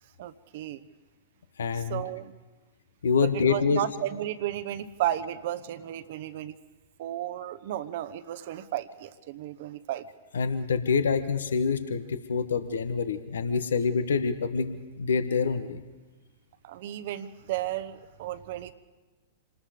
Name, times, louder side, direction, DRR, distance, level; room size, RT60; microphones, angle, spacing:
voice 1, 0.2-0.8 1.7-2.3 3.2-6.6 7.0-10.1 16.6-18.7, right 12 dB, 55° right, 14 dB, 1.0 m, -33 dB
voice 2, 1.6-2.0 3.0-3.8 10.3-15.8, left 5 dB, 75° left, 11 dB, 1.1 m, -26 dB
26.5 x 19.5 x 5.1 m, 1.2 s
hypercardioid pair, 105°, 0 cm